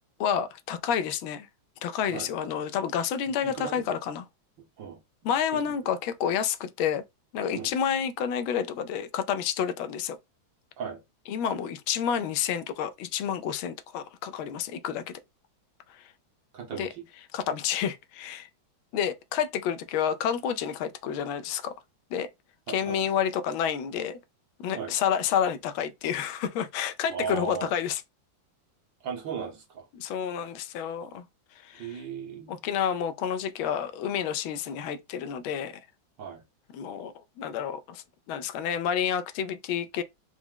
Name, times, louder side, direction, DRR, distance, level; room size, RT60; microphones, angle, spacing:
voice 1, 0.2-1.5 1.8-4.3 5.2-7.0 7.3-10.2 11.3-15.2 15.9-16.0 16.8-16.9 17.3-18.5 18.9-21.7 22.1-22.3 22.7-24.2 24.6-28.0 29.9-31.2 31.6-32.0 32.5-35.7 36.7-40.0, left 8 dB, 85° left, 1.4 m, -29 dB
voice 2, 3.4-3.8 4.8-5.6 7.5-7.7 10.8-11.0 16.5-17.0 22.7-23.0 24.8-24.9 27.1-27.7 29.0-29.9 31.8-32.6 36.2-36.4, right 6 dB, 70° right, 1.7 m, -37 dB
4.6 x 2.1 x 3.6 m
omnidirectional pair, 2.2 m